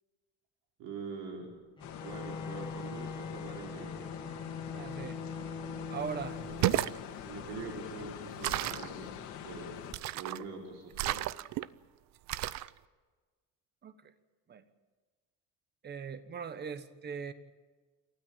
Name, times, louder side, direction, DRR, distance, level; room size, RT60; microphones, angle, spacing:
voice 1, 0.8-1.5 1.9-4.2 6.5-6.9 7.2-9.9 10.1-11.2, right 4 dB, 85° right, 0 dB, 5.3 m, -44 dB
sound 1, 1.8-9.9, left 9 dB, 60° left, 2.1 m, -45 dB
Bowed string instrument, 1.8-7.1, left 5 dB, 15° left, 1.9 m, -42 dB
voice 2, 4.7-5.2 5.9-6.4 13.8-14.1 14.5-14.6 15.8-17.3, right 6 dB, 30° right, 12 dB, 1.3 m, -40 dB
sound 2, 6.5-7.0 8.4-8.9 9.9-10.4 10.9-11.7 12.3-12.7, right 15 dB, 55° right, 0.6 m, -32 dB
28.5 x 13.5 x 9.0 m, 1.4 s
cardioid pair, 155°, 33 cm